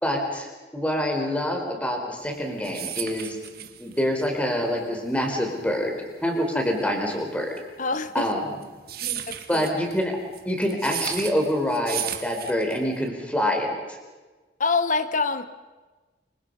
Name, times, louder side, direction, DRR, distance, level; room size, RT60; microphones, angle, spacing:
voice 1, 0.0-3.4 3.8-5.9 6.2-7.5 8.1-8.5 9.0-9.2 9.5-10.1 10.4-14.0, equal, 5° left, 2 dB, 4.5 m, -26 dB
sound 1, 2.3-13.1, right 11 dB, 55° right, 1.9 m, -35 dB
voice 2, 7.8-8.3 9.3-9.7 14.6-15.5, left 4 dB, 45° left, 12 dB, 1.4 m, -25 dB
28.0 x 24.5 x 5.6 m, 1.3 s
head